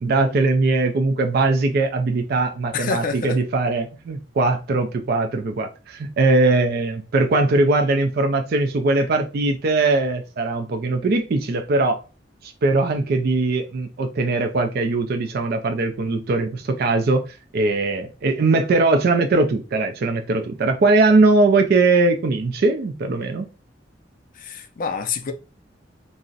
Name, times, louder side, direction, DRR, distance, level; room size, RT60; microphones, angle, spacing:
voice 1, 0.0-12.0 12.4-17.2 17.5-23.5, right 3 dB, 55° right, 0.4 m, -20 dB
voice 2, 2.7-3.4 24.4-25.3, left 5 dB, 45° left, 0.4 m, -27 dB
2.4 x 2.0 x 3.7 m
head